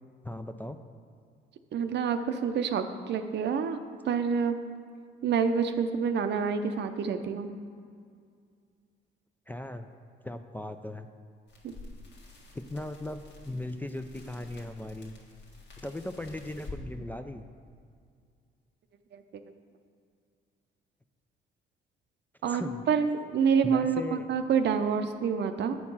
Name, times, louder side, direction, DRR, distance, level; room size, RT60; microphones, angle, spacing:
voice 1, 0.2-0.8 9.5-9.9 10.2-11.1 12.5-15.1 15.8-17.4 22.5-22.8 23.6-24.3, left 1 dB, 10° left, 6 dB, 0.3 m, -38 dB
voice 2, 1.7-3.8 4.1-4.6 5.2-7.5 19.1-19.2 22.4-25.8, right 6 dB, 60° right, 8 dB, 0.6 m, -27 dB
sound 1, 11.5-16.8, left 2 dB, 70° left, 1.6 m, -49 dB
8.3 x 4.6 x 5.5 m, 2.2 s
cardioid pair, 90°, 20 cm